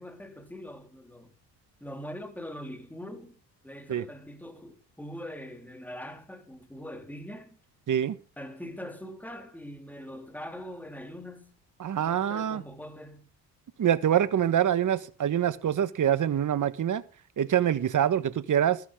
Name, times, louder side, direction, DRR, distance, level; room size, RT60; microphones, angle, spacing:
voice 1, 0.0-1.3 1.8-7.6 8.4-11.5 11.9-13.3, equal, 5° left, 3.4 m, -42 dB
voice 2, 11.8-12.6 13.8-17.0 17.4-18.8, right 10 dB, 45° right, 1.4 m, -25 dB
14.0 x 12.5 x 3.7 m
supercardioid pair, 80°, 41 cm